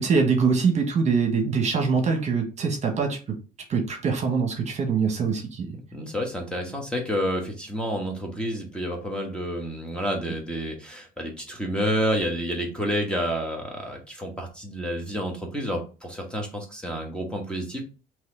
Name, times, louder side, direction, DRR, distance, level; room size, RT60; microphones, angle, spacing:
voice 1, 0.0-3.2 3.7-5.7, right 5 dB, 40° right, 1.2 m, -23 dB
voice 2, 5.9-17.8, equal, 5° left, 1.2 m, -29 dB
4.1 x 3.0 x 3.8 m
cardioid pair, 110°, 17 cm